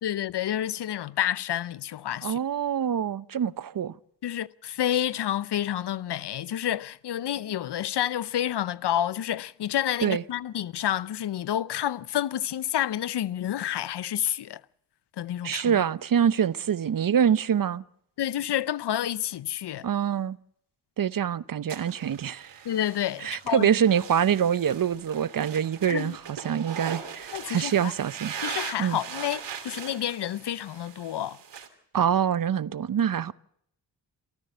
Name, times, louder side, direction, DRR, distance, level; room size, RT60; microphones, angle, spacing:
voice 1, 0.0-2.4 4.2-14.6 15.2-15.8 18.2-19.9 22.6-23.7 25.8-26.2 27.3-27.9 28.4-31.4, left 11 dB, 65° left, 0.8 m, -29 dB
voice 2, 2.2-3.9 10.0-10.2 15.4-17.8 19.8-20.4 21.0-22.6 23.2-26.2 26.4-28.3 28.8-29.0 31.9-33.3, right 8 dB, 50° right, 0.8 m, -25 dB
sound 1, 21.7-31.7, right 7 dB, 70° right, 3.0 m, -40 dB
27.0 x 14.5 x 6.7 m
supercardioid pair, 45°, 44 cm